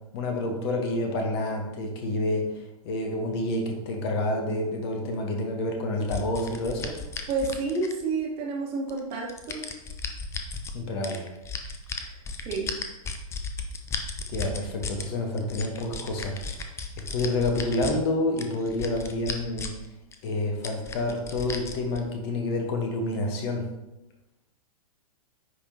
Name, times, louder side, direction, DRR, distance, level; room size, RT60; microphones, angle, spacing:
voice 1, 0.1-2.5 2.8-6.9 10.7-11.2 14.3-16.3 17.1-19.7 20.2-23.7, left 2 dB, 40° left, 2 dB, 1.2 m, -28 dB
sound 1, 6.1-8.2 8.9-10.7 11.0-15.0 15.4-17.9 18.4-19.8 20.1-20.2 20.6-22.0, left 4 dB, 15° left, 0.6 m, -35 dB
voice 2, 7.3-9.6 12.4-12.7, right 3 dB, 30° right, -2 dB, 1.4 m, -29 dB
9.7 x 3.5 x 2.9 m, 0.95 s
figure-of-eight pair, 110°, 20 cm